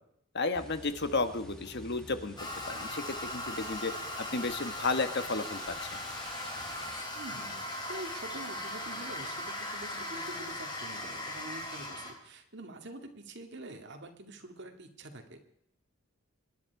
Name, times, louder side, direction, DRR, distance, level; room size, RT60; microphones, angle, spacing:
voice 1, 0.3-2.4 2.7-3.9 4.3-5.8, left 3 dB, 50° left, 10 dB, 1.3 m, -32 dB
sound 1, 0.5-7.0, equal, 5° left, 2.0 m, -51 dB
Toilet flush, 2.4-12.1, left 1 dB, 20° left, 3.4 m, -39 dB
voice 2, 7.2-15.4, right 2 dB, 55° right, 5 dB, 2.2 m, -46 dB
25.5 x 11.0 x 4.7 m, 0.75 s
head